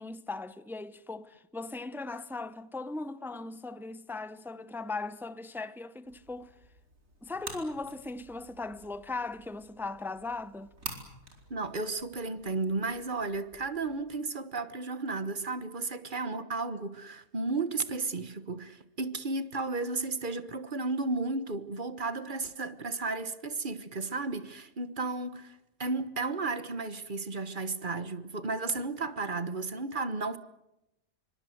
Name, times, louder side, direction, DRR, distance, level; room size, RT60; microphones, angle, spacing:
voice 1, 0.0-6.5 7.2-10.7, left 3 dB, ahead, 0.5 m, -38 dB
sound 1, 6.1-14.0, right 2 dB, 65° right, 4.8 m, -49 dB
voice 2, 11.5-30.4, right 3 dB, 35° right, 1.3 m, -33 dB
25.5 x 24.5 x 7.8 m
omnidirectional pair, 1.5 m